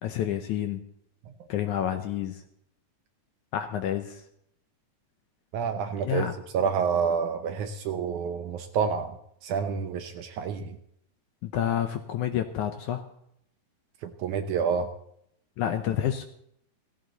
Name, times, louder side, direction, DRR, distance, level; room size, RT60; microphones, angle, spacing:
voice 1, 0.0-0.8 1.5-2.4 3.5-4.2 6.0-6.3 11.4-13.0 15.6-16.2, left 10 dB, 75° left, 7 dB, 1.9 m, -29 dB
voice 2, 5.5-6.3 6.5-9.1 9.4-10.8 14.0-14.9, right 6 dB, 70° right, 7 dB, 2.0 m, -28 dB
16.0 x 15.5 x 4.0 m, 0.73 s
omnidirectional pair, 4.2 m